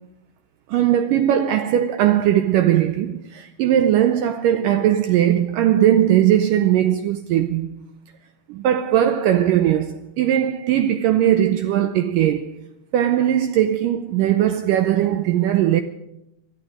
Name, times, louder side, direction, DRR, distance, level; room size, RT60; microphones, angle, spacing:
voice 1, 0.7-7.8 8.5-12.5 12.9-15.8, right 11 dB, 85° right, 1.9 m, -19 dB
23.0 x 12.5 x 4.9 m
omnidirectional pair, 4.6 m